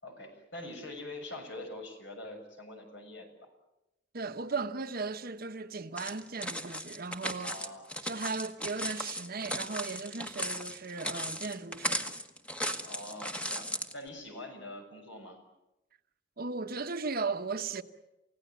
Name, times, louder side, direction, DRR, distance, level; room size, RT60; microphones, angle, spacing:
voice 1, 0.0-3.5 7.4-8.0 12.8-15.4, left 2 dB, 70° left, 6.5 m, -44 dB
voice 2, 4.1-7.6 8.0-12.2 16.4-17.8, right 4 dB, 55° right, 1.1 m, -36 dB
sound 1, 6.0-13.9, equal, 5° left, 1.4 m, -36 dB
29.0 x 17.0 x 9.3 m
head